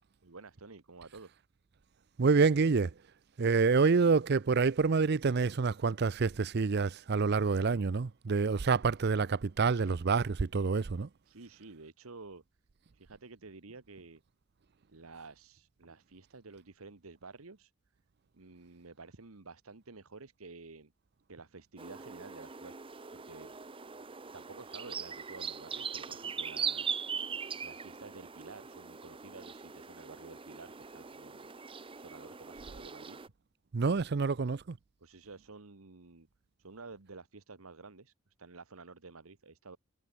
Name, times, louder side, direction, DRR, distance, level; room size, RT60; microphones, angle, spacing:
voice 1, 0.2-1.3 11.2-12.4 12.9-14.2 14.9-17.7 18.3-20.9 21.3-22.8 23.1-23.9 24.3-27.0 27.6-31.5 31.9-33.2 35.0-36.3 36.6-39.8, right 3 dB, 85° right, 1.4 m, -51 dB
voice 2, 2.2-2.9 3.4-11.1 33.7-34.8, right 4 dB, 50° right, 0.5 m, -27 dB
sound 1, 21.8-33.3, right 6 dB, 25° right, 0.8 m, -41 dB
head